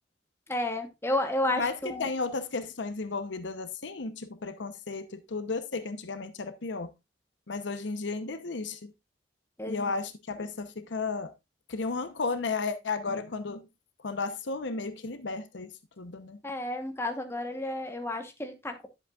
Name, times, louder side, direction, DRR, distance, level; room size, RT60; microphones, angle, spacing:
voice 1, 0.5-2.1 9.6-9.9 16.4-18.9, left 1 dB, 15° left, 1.1 m, -31 dB
voice 2, 1.5-6.9 7.5-8.9 9.7-11.3 11.7-13.7 14.0-16.4, left 4 dB, 65° left, 0.8 m, -34 dB
10.5 x 7.6 x 2.4 m
head